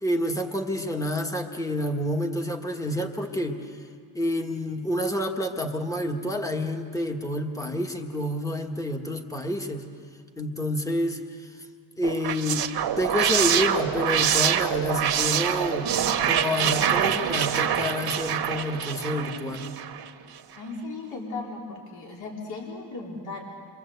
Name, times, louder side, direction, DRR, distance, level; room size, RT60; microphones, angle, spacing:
voice 1, 0.0-3.7 4.1-9.9 10.4-11.5 12.0-15.9 16.2-19.8, left 1 dB, 10° left, 4 dB, 1.5 m, -28 dB
sound 1, 12.0-20.1, right 9 dB, 65° right, 1.4 m, -25 dB
voice 2, 20.6-23.4, left 3 dB, 65° left, -2 dB, 4.3 m, -36 dB
29.5 x 24.0 x 8.1 m, 2.2 s
wide cardioid pair, 170°, 40 cm